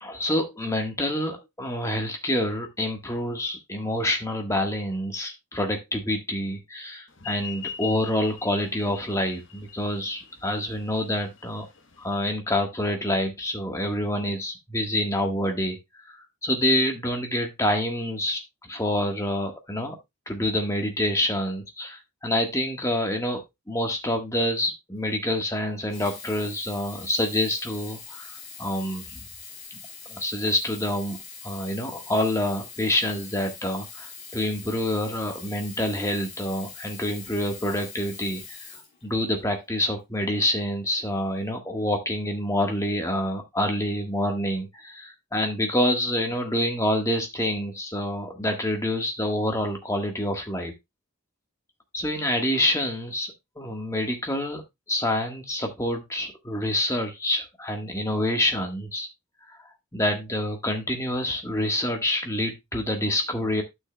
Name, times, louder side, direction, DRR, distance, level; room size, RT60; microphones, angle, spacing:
voice 1, 0.0-11.6 12.0-15.8 16.1-16.2 16.4-20.0 20.3-29.2 30.1-31.2 31.4-38.6 39.0-50.7 51.9-54.6 54.9-59.1 59.9-63.6, left 1 dB, 15° left, 3 dB, 1.4 m, -27 dB
sound 1, 7.2-12.2, left 7 dB, 55° left, 1.1 m, -41 dB
Sink (filling or washing), 25.8-39.6 40.3-40.4, left 5 dB, 35° left, 2.9 m, -43 dB
11.5 x 6.5 x 2.2 m, 0.20 s
head